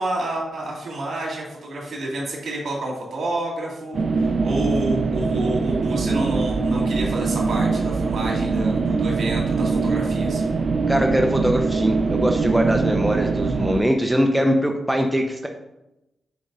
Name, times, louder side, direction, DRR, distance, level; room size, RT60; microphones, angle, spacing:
voice 1, 0.0-10.4, right 1 dB, 70° right, -2 dB, 2.7 m, -29 dB
sound 1, 3.9-13.8, right 4 dB, 50° right, 0.4 m, -22 dB
voice 2, 10.9-15.5, equal, 5° right, 2 dB, 0.6 m, -21 dB
7.0 x 4.9 x 4.1 m, 0.90 s
wide cardioid pair, 110°, 0 cm